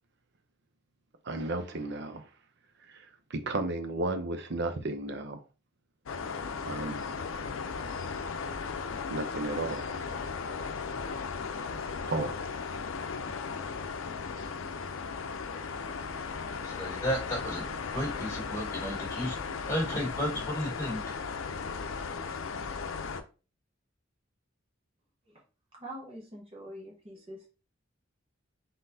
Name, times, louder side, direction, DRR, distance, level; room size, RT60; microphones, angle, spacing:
voice 1, 1.2-2.3 2.9-5.4 6.7-7.0 9.1-10.3 12.0-12.4, right 2 dB, 60° right, 0.6 m, -34 dB
sound 1, 6.1-23.2, left 5 dB, 85° left, 0.5 m, -36 dB
voice 2, 16.6-17.7 17.9-19.4 19.7-21.0, equal, 15° left, 1.7 m, -33 dB
voice 3, 25.7-27.5, equal, 30° right, 1.0 m, -45 dB
3.9 x 3.9 x 2.7 m
head